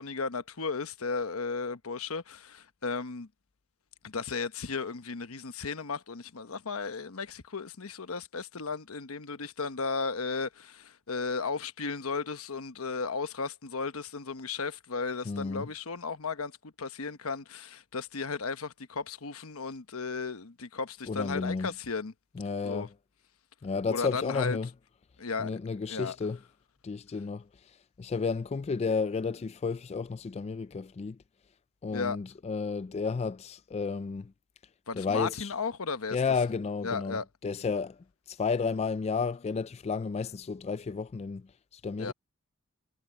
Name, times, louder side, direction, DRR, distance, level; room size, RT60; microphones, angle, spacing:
voice 1, 0.0-3.3 4.0-22.1 22.6-22.9 23.9-24.6 25.2-25.5 25.9-26.2 31.9-32.2 34.9-36.2 36.8-37.3 42.0-42.1, left 4 dB, 85° left, 1.0 m, -35 dB
voice 2, 15.3-15.7 21.1-21.7 22.4-22.9 23.6-24.7 25.4-26.4 26.8-27.4 28.0-31.2 31.8-34.3 35.0-35.5 36.1-38.0 38.3-41.4 41.7-42.1, left 5 dB, 30° left, 0.3 m, -32 dB
head